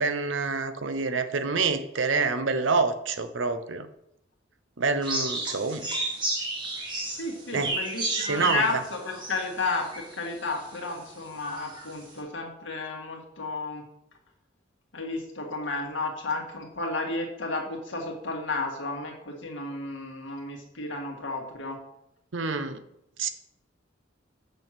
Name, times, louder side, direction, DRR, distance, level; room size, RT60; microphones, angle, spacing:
voice 1, 0.0-3.9 4.8-5.9 7.5-7.7 8.1-8.8 22.3-22.8 23.2-23.3, right 4 dB, 70° right, 10 dB, 0.7 m, -27 dB
sound 1, 5.0-10.3 10.8-10.9 11.4-11.9, right 2 dB, 25° right, 2.0 m, -32 dB
voice 2, 7.2-13.8 14.9-21.8, left 3 dB, 70° left, 1 dB, 1.9 m, -32 dB
6.7 x 6.3 x 6.0 m, 0.82 s
head